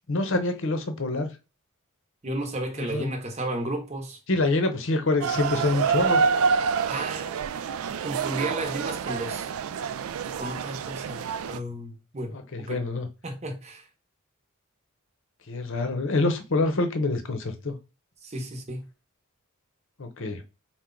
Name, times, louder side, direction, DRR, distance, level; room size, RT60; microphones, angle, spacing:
voice 1, 0.1-1.3 2.8-3.1 4.3-6.2 12.3-13.1 15.5-17.7 20.0-20.4, left 2 dB, 60° left, 0.8 m, -26 dB
voice 2, 2.2-4.2 6.8-7.4 8.0-9.5 10.2-12.8 13.2-13.8 18.2-18.8, right 1 dB, 30° right, 0.9 m, -33 dB
sound 1, 5.2-11.6, right 5 dB, 70° right, 0.3 m, -27 dB
4.4 x 2.2 x 3.8 m
head